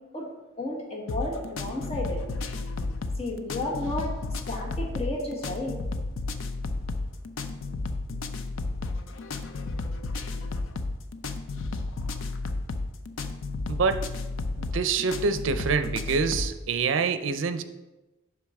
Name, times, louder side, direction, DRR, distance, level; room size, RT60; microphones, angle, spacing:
voice 1, 0.6-2.2 3.2-4.1 4.5-5.8, left 1 dB, 30° left, -2 dB, 1.4 m, -32 dB
sound 1, 1.1-16.6, left 3 dB, 80° left, 0.5 m, -32 dB
voice 2, 13.7-14.1 14.6-17.6, right 5 dB, 70° right, 9 dB, 0.5 m, -26 dB
8.0 x 5.9 x 3.5 m, 1.1 s
head